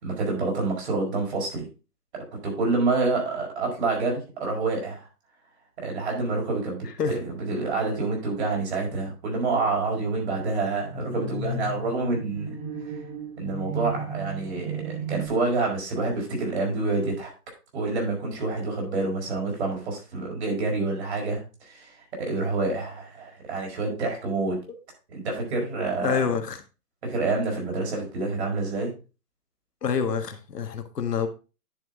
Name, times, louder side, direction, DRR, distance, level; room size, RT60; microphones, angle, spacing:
voice 1, 0.0-1.7 2.1-5.1 5.8-12.6 12.9-13.0 13.4-17.3 17.7-24.6 25.1-26.2 27.0-28.9, right 3 dB, 45° right, 4.8 m, -28 dB
sound 1, 10.9-15.3, right 3 dB, 20° right, 1.8 m, -35 dB
voice 2, 26.0-26.6 29.8-31.3, left 6 dB, 90° left, 1.7 m, -27 dB
10.5 x 6.2 x 3.6 m
hypercardioid pair, 165°, 46 cm